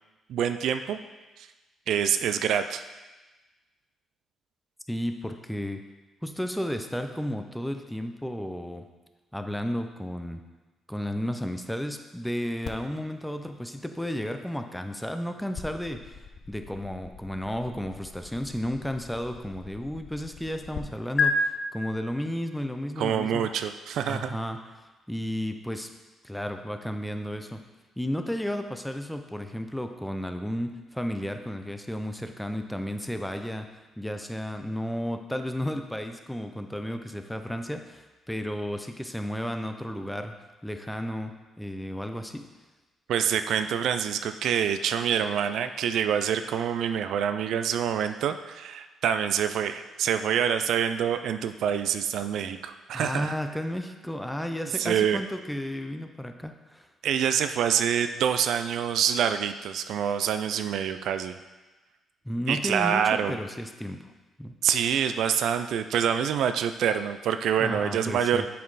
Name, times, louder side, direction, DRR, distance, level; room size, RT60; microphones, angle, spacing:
voice 1, 0.3-1.0 1.4-1.5 1.9-2.8 23.0-24.4 43.1-53.3 54.8-55.2 57.0-61.4 62.5-63.4 64.6-68.5, right 8 dB, 75° right, 9 dB, 0.3 m, -26 dB
voice 2, 4.9-5.8 6.2-8.9 9.3-10.4 10.9-16.2 16.5-23.5 24.1-24.6 25.1-25.9 26.2-27.6 28.0-33.7 34.0-40.3 40.6-42.5 52.9-56.9 62.2-64.1 64.4-64.6 67.6-68.5, equal, 5° left, 6 dB, 0.5 m, -33 dB
sound 1, 12.6-20.8 21.2-21.3, left 6 dB, 55° left, 0.6 m, -36 dB
7.4 x 4.3 x 4.0 m, 1.2 s
cardioid pair, 90°, 0 cm